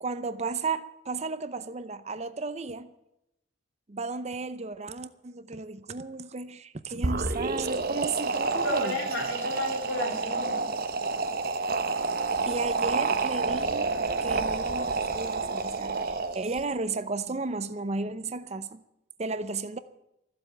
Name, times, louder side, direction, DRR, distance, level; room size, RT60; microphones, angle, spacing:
voice 1, 0.0-2.9 3.9-9.0 12.5-14.0 14.2-18.8 19.2-19.8, right 3 dB, 35° right, 12 dB, 0.7 m, -34 dB
sound 1, 6.9-16.6, right 4 dB, 50° right, 1.0 m, -29 dB
voice 2, 8.4-10.7, left 1 dB, 70° left, 1 dB, 3.9 m, -32 dB
14.5 x 7.8 x 9.0 m, 0.85 s
head